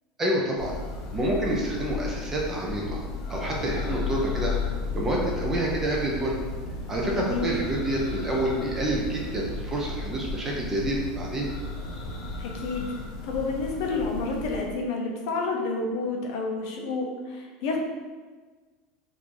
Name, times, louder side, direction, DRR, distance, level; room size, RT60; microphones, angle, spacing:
voice 1, 0.2-0.8 1.1-3.0 3.3-4.5 4.9-6.4 6.9-11.5, right 1 dB, 15° right, -2 dB, 0.4 m, -28 dB
Church bell, 0.6-14.9, left 5 dB, 85° left, 0.8 m, -35 dB
sound 1, 3.4-12.4, right 2 dB, 70° right, 1.0 m, -40 dB
voice 2, 7.1-7.5 12.4-12.9 13.2-17.8, left 3 dB, 55° left, 0 dB, 0.6 m, -29 dB
3.0 x 2.5 x 3.6 m, 1.4 s
supercardioid pair, 180°, 3 cm